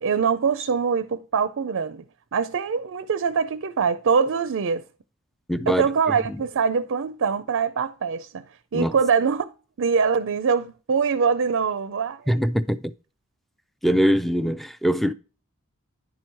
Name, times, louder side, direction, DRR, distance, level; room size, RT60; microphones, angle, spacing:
voice 1, 0.0-2.0 2.3-4.8 5.7-8.4 8.7-9.5 9.8-12.2, right 6 dB, 60° right, 0.5 m, -23 dB
voice 2, 5.5-6.4 8.7-8.9 12.3-12.8 13.8-15.1, equal, ahead, 0.4 m, -23 dB
10.5 x 4.6 x 4.6 m
head